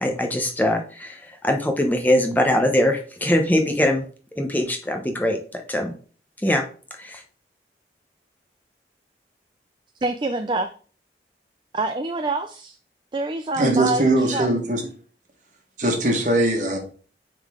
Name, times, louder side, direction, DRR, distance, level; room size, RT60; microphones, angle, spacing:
voice 1, 0.0-4.0 4.4-5.9 6.4-6.6 7.0-7.2, left 1 dB, 10° left, 3 dB, 0.7 m, -22 dB
voice 2, 10.0-10.7 11.7-12.8 13.1-14.1 14.3-14.5, right 2 dB, 25° right, 8 dB, 0.4 m, -26 dB
voice 3, 13.6-14.9 15.8-16.8, right 1 dB, 45° right, 3 dB, 1.4 m, -21 dB
9.5 x 3.8 x 3.6 m, 0.41 s
head